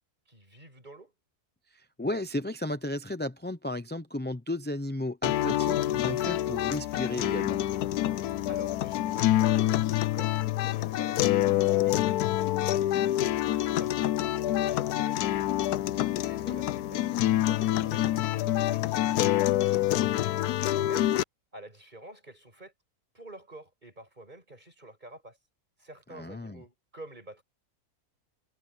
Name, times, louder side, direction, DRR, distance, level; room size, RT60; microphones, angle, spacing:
voice 1, 0.3-1.1 8.5-11.3 11.8-15.9 16.2-17.1 17.4-21.1 21.5-22.7 23.1-25.4 25.8-27.4, right 1 dB, 30° right, 7.5 m, -49 dB
voice 2, 1.7-7.6 16.5-16.6 26.1-26.6, left 1 dB, 10° left, 0.5 m, -34 dB
sound 1, 5.2-21.2, left 14 dB, 90° left, 1.2 m, -26 dB
omnidirectional pair, 1.6 m